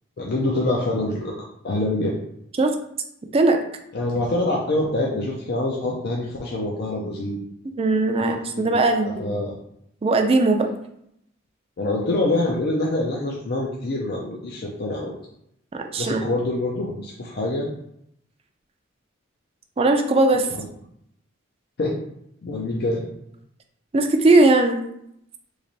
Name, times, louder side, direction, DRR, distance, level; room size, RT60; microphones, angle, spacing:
voice 1, 0.2-1.4 1.6-2.2 3.9-7.4 8.1-9.6 11.8-15.1 16.0-17.7 21.8-22.0 22.4-23.0, left 2 dB, 55° left, -3 dB, 0.5 m, -25 dB
voice 2, 7.8-9.3 10.0-10.7 15.7-16.2 19.8-20.5 23.9-24.8, right 2 dB, 30° right, 5 dB, 0.4 m, -19 dB
3.2 x 2.5 x 4.0 m, 0.75 s
head